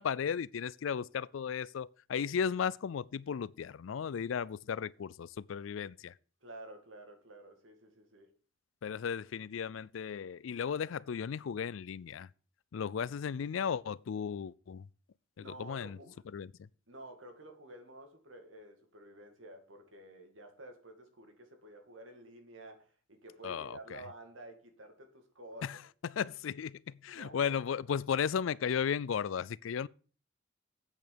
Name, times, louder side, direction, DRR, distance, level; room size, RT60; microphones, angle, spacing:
voice 1, 0.0-6.1 8.8-12.3 12.7-14.9 15.4-16.0 16.3-16.7 23.4-24.0 25.6-25.8 26.0-29.9, left 7 dB, 90° left, 0.4 m, -35 dB
voice 2, 6.4-8.3 15.4-16.2 16.9-25.7 27.1-27.6, right 1 dB, 85° right, 2.4 m, -51 dB
8.3 x 6.4 x 6.8 m
head